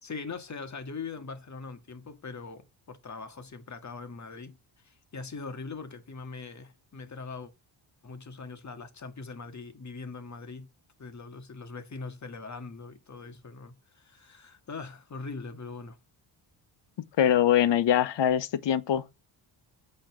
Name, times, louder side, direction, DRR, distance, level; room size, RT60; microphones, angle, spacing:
voice 1, 0.0-7.5 8.0-10.7 11.0-16.0, left 4 dB, 35° left, 2.0 m, -41 dB
voice 2, 17.2-19.2, left 10 dB, 60° left, 1.1 m, -23 dB
9.1 x 4.3 x 6.8 m
cardioid pair, 105°, 48 cm